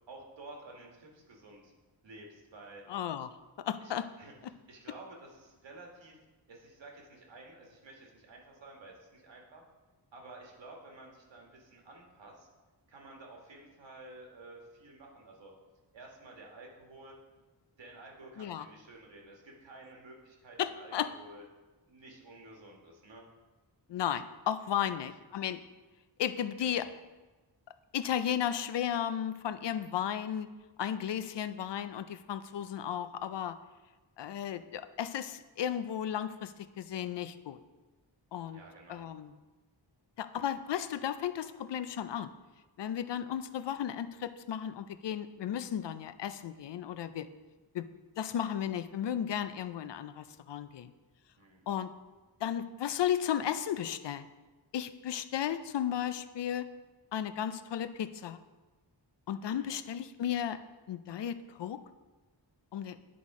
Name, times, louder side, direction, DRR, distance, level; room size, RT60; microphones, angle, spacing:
voice 1, 0.1-1.7 2.0-2.8 3.8-3.9 4.2-6.2 6.5-9.6 10.1-12.5 12.9-15.5 15.9-17.1 17.8-21.4 21.9-23.2 24.8-25.0 26.6-26.9 38.5-39.0 51.4-51.6 59.4-59.8, right 2 dB, 75° right, 0 dB, 1.7 m, -52 dB
voice 2, 2.9-3.3 3.6-4.0 18.4-18.7 20.6-21.1 23.9-25.6 26.2-26.9 27.9-30.5 30.8-33.6 34.2-37.6 38.3-38.6 38.9-39.3 40.2-42.3 42.8-47.3 47.7-47.9 48.2-50.9 51.7-51.9 52.4-54.3 54.7-56.7 57.1-58.4 59.3-60.6 60.9-61.8 62.7-63.0, left 9 dB, 70° left, 12 dB, 0.5 m, -34 dB
10.0 x 4.1 x 4.8 m, 1.2 s
wide cardioid pair, 165°, 44 cm